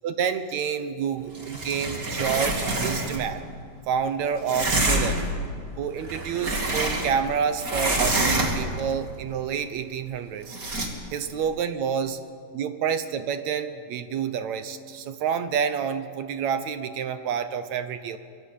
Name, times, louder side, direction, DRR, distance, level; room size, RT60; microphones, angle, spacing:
voice 1, 0.0-3.4 3.9-5.2 5.8-10.6 11.1-12.2 12.5-18.2, right 7 dB, 70° right, 10 dB, 1.9 m, -28 dB
sound 1, 1.3-3.3 4.5-5.3 6.0-7.3 7.6-8.8 10.5-10.9, right 2 dB, 25° right, 2.7 m, -26 dB
25.5 x 22.5 x 8.5 m, 2.3 s
omnidirectional pair, 3.9 m